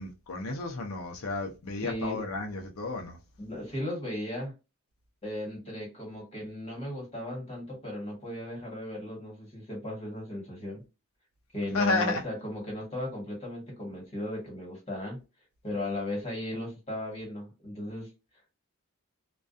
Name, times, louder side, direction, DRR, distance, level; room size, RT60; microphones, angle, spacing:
voice 1, 0.0-3.2 11.7-12.2, left 3 dB, 85° left, 0.6 m, -32 dB
voice 2, 1.8-2.2 3.4-4.5 5.2-10.8 11.5-15.2 15.6-18.1, left 1 dB, 30° left, 1.4 m, -36 dB
2.4 x 2.2 x 2.5 m
head